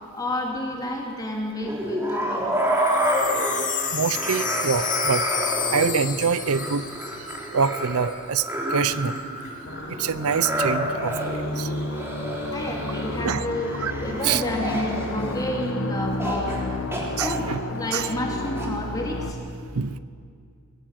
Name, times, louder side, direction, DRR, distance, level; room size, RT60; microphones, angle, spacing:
voice 1, 0.1-2.5 12.5-16.8 17.2-19.4, left 1 dB, 15° left, -1 dB, 3.2 m, -30 dB
sound 1, 1.7-15.7 16.2-16.6 16.9-18.7, equal, 10° right, 3.2 m, -29 dB
Wind chime, 2.6-7.8 8.1-8.2 8.4-8.8, left 8 dB, 35° left, 2.0 m, -31 dB
voice 2, 3.9-5.2 5.7-6.9 7.5-8.4 8.7-9.1 10.0-11.1 11.6-11.7 13.2-13.4 13.8-13.9 14.2-14.4 17.2-17.6 17.9-18.1 19.7-20.0, right 6 dB, 80° right, 15 dB, 0.7 m, -25 dB
sound 2, 9.6-19.3, left 1 dB, 60° left, 1.4 m, -31 dB
20.5 x 17.5 x 7.6 m, 2.2 s
head